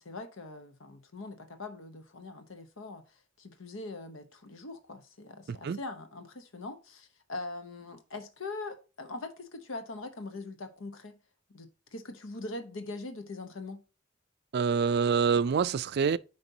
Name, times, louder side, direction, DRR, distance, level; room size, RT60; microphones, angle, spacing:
voice 1, 0.0-3.0 3.4-11.1 11.5-13.8, left 2 dB, 75° left, 0.9 m, -42 dB
voice 2, 5.5-5.8 14.5-16.2, right 6 dB, 55° right, 0.4 m, -26 dB
9.1 x 5.2 x 2.8 m
head